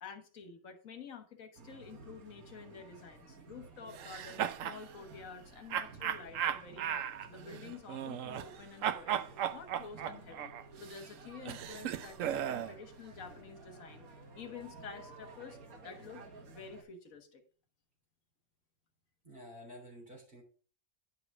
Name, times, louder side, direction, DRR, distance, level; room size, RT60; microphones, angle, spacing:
voice 1, 0.0-9.2 9.5-12.2 12.5-14.0 14.3-15.6 15.8-17.4, left 5 dB, 70° left, 1.7 m, -49 dB
sound 1, 1.5-16.8, right 3 dB, 85° right, 1.9 m, -54 dB
sound 2, 3.9-4.8 5.7-8.6 8.8-12.8, right 9 dB, 70° right, 1.0 m, -36 dB
voice 2, 19.2-20.4, equal, 40° right, 3.7 m, -50 dB
10.5 x 4.9 x 4.7 m
omnidirectional pair, 1.5 m